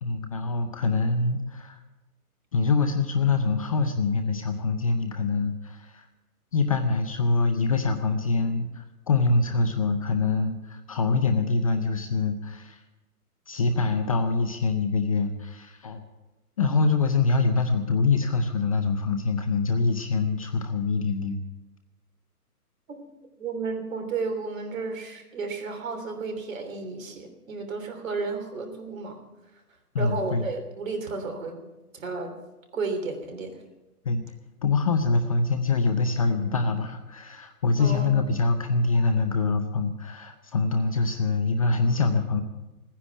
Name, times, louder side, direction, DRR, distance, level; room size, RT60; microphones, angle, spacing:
voice 1, 0.0-1.8 2.5-6.1 6.5-12.8 13.5-16.0 16.6-21.4 29.9-30.5 34.1-34.2 34.6-42.4, left 3 dB, 25° left, 8 dB, 0.5 m, -24 dB
voice 2, 23.4-29.2 30.0-31.6 31.9-32.3 32.7-33.5 37.8-38.2, right 4 dB, 60° right, 5 dB, 3.4 m, -32 dB
16.5 x 10.0 x 7.1 m, 1.0 s
hypercardioid pair, 140°, 46 cm